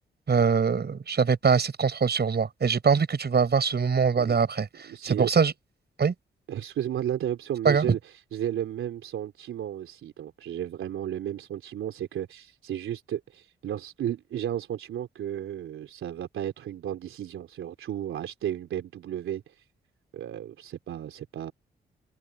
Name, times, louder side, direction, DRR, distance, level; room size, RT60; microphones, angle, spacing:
voice 1, 0.3-4.7 5.0-5.5 6.0-6.1 7.6-7.8, right 6 dB, 50° right, 5.7 m, -23 dB
voice 2, 4.9-5.3 6.5-19.6 20.1-21.5, right 10 dB, 75° right, 3.3 m, -33 dB
hypercardioid pair, 45°, 21 cm